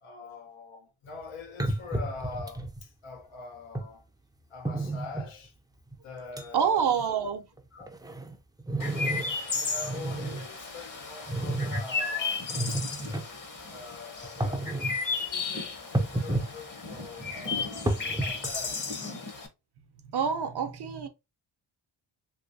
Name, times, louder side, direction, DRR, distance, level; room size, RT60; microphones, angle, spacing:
voice 1, 0.0-4.0 4.5-5.5 6.0-6.9 7.7-7.9 9.5-12.8 13.7-14.7 15.1-19.3, left 4 dB, 90° left, 0.9 m, -44 dB
sound 1, 1.1-1.2 1.6-2.8 3.7-3.9 4.6-5.3 5.9-6.0 6.4-6.5 6.8-7.1 7.6-9.4 9.7-10.5 11.3-11.8 12.4-13.2 14.2-15.0 15.9-16.5 16.8-18.6, right 2 dB, 10° right, 0.4 m, -31 dB
voice 2, 6.5-7.4 20.0-21.1, right 7 dB, 55° right, 0.7 m, -27 dB
Chirp tweet, 8.8-19.5, left 4 dB, 40° left, 0.9 m, -34 dB
3.0 x 3.0 x 2.6 m
cardioid pair, 75°, 48 cm